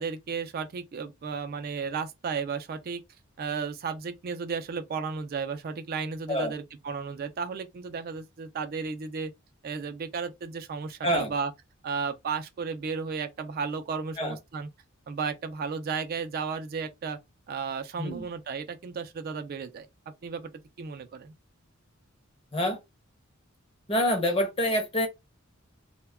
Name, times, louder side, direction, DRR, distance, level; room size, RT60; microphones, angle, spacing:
voice 1, 0.0-3.0 3.4-9.3 9.6-11.5 11.8-14.7 15.1-17.2 17.5-19.9 20.2-20.5 20.8-21.3, right 5 dB, 45° right, 0.3 m, -34 dB
voice 2, 23.9-25.1, equal, 25° left, 0.7 m, -26 dB
2.2 x 2.1 x 3.4 m
head